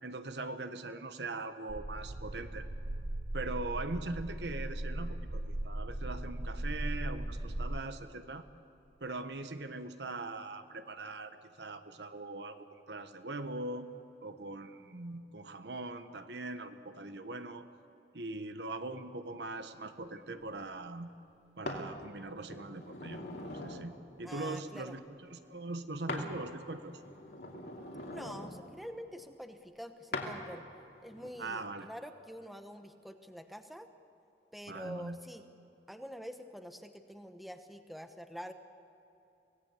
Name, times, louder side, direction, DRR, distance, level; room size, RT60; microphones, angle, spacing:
voice 1, 0.0-2.7 3.3-8.4 9.0-13.9 14.2-17.7 18.1-21.1 21.6-23.2 23.6-27.0 31.4-31.9 34.7-35.2, right 2 dB, 75° right, 9 dB, 1.2 m, -41 dB
sound 1, 1.7-7.8, right 1 dB, 50° right, 0.8 m, -38 dB
sound 2, 21.7-21.9 22.5-23.9 26.1-26.3 26.7-28.6 30.1-30.3 31.1-31.3, left 2 dB, 65° left, 2.7 m, -41 dB
voice 2, 24.2-24.9 28.1-30.6 31.0-33.9 34.5-35.4 35.9-38.5, equal, ahead, 7 dB, 0.9 m, -46 dB
25.0 x 17.5 x 8.3 m, 2.9 s
head